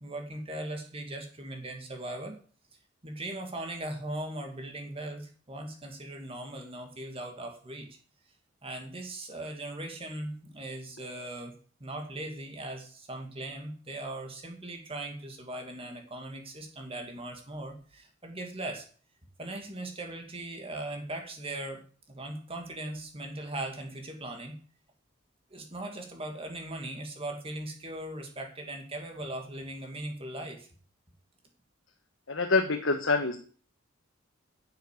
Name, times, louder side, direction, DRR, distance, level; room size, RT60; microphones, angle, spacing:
voice 1, 0.0-2.4 3.0-7.9 8.6-11.6 11.8-18.9 19.4-21.8 22.1-24.5 25.5-30.7, right 1 dB, 30° right, 3 dB, 2.3 m, -39 dB
voice 2, 32.3-33.4, left 3 dB, 70° left, 4 dB, 1.4 m, -26 dB
11.0 x 7.0 x 8.3 m, 0.42 s
head